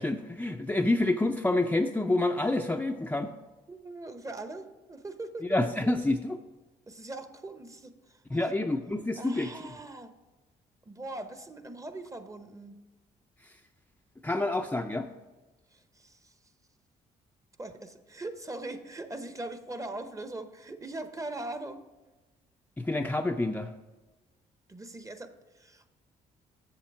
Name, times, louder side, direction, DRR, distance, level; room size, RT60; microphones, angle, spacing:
voice 1, 0.0-3.3 5.4-6.4 8.3-9.5 14.2-15.1 22.8-23.7, left 2 dB, 10° left, 4 dB, 0.5 m, -28 dB
voice 2, 3.7-5.4 6.9-7.9 8.3-8.5 9.1-10.1 10.9-12.8 16.0-16.2 17.6-21.8 24.7-25.3 25.6-25.8, right 2 dB, 20° right, 9 dB, 0.9 m, -40 dB
7.5 x 7.0 x 4.7 m, 1.1 s
supercardioid pair, 65°, 16 cm